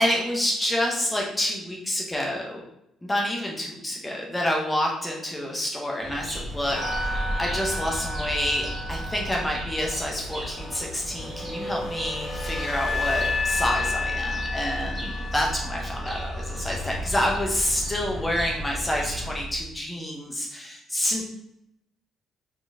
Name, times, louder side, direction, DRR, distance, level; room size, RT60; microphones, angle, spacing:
voice 1, 0.0-2.6 3.0-21.2, left 1 dB, 15° left, -1 dB, 0.7 m, -28 dB
sound 1, 6.0-19.4, equal, 35° right, 1.0 m, -37 dB
sound 2, 6.7-19.6, left 2 dB, 30° left, 1.0 m, -32 dB
4.3 x 2.4 x 2.6 m, 0.81 s
figure-of-eight pair, 45°, 0 cm